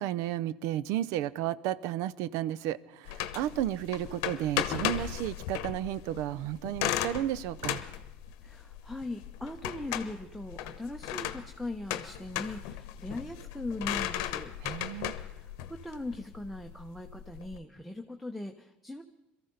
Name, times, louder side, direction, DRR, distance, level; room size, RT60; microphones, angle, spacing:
voice 1, 0.0-7.8 14.6-15.1, right 12 dB, 70° right, 0.5 m, -33 dB
sound 1, 3.1-17.6, left 12 dB, 70° left, 0.9 m, -36 dB
voice 2, 8.4-14.5 15.2-19.0, left 2 dB, ahead, 0.9 m, -40 dB
22.5 x 14.0 x 3.9 m
hypercardioid pair, 80°, 6 cm